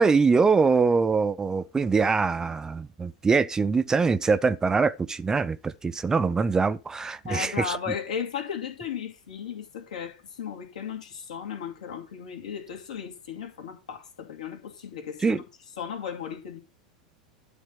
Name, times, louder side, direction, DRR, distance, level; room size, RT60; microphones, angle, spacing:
voice 1, 0.0-7.8 15.2-15.4, right 4 dB, 15° right, 0.5 m, -23 dB
voice 2, 7.2-15.4 15.8-16.6, left 7 dB, 70° left, 2.6 m, -35 dB
11.5 x 4.2 x 5.3 m
figure-of-eight pair, 90°, 4 cm